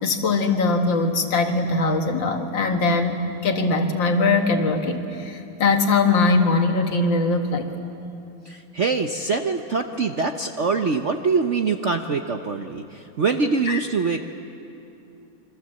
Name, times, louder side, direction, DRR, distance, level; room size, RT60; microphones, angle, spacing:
voice 1, 0.0-7.7 13.6-13.8, left 3 dB, 65° left, 4 dB, 2.4 m, -21 dB
voice 2, 8.4-14.2, right 4 dB, 50° right, 5 dB, 0.9 m, -24 dB
27.5 x 24.5 x 7.7 m, 2.8 s
omnidirectional pair, 2.2 m